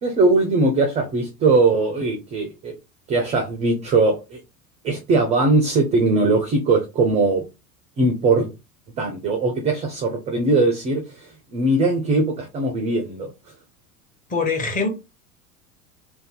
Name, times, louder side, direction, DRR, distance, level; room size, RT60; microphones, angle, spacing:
voice 1, 0.0-2.7 3.1-4.4 4.8-7.4 8.0-8.5 9.0-13.3, right 3 dB, 15° right, 0.4 m, -20 dB
voice 2, 14.3-14.9, left 4 dB, 20° left, 0.8 m, -23 dB
2.5 x 2.2 x 3.6 m
figure-of-eight pair, 75°, 44 cm